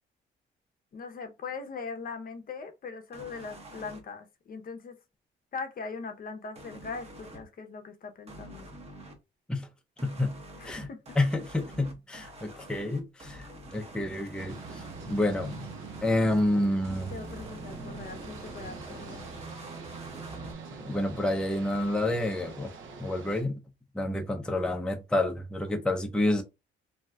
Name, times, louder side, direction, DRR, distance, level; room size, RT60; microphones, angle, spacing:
voice 1, 0.9-5.0 5.5-8.7 10.6-10.7 11.1-11.2 17.1-19.3, left 4 dB, 45° left, 0.6 m, -40 dB
sound 1, 3.1-4.0 6.5-7.4 8.3-9.1 10.0-16.4 16.8-20.5, right 1 dB, 30° right, 0.9 m, -45 dB
voice 2, 10.0-10.9 11.2-15.7 16.0-17.1 20.8-22.7 23.0-23.6 23.9-26.4, left 1 dB, 5° left, 0.5 m, -29 dB
sound 2, 14.4-23.4, right 5 dB, 75° right, 0.9 m, -44 dB
2.7 x 2.2 x 3.3 m
cardioid pair, 90°, 20 cm